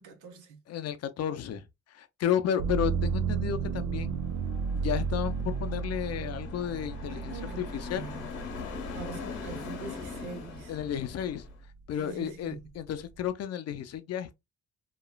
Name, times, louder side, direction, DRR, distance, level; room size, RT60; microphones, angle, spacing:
voice 1, 0.0-0.6 7.1-8.2 8.9-10.7 12.0-12.6, right 5 dB, 80° right, 1.0 m, -43 dB
voice 2, 0.7-1.7 1.9-4.2 4.7-8.1 10.7-11.4 11.9-14.4, left 9 dB, 55° left, 0.5 m, -32 dB
sound 1, 2.6-10.4 10.9-11.7, right 6 dB, 65° right, 0.4 m, -33 dB
sound 2, 4.1-11.6, left 5 dB, 90° left, 1.0 m, -42 dB
2.9 x 2.4 x 2.2 m
cardioid pair, 90°, 30 cm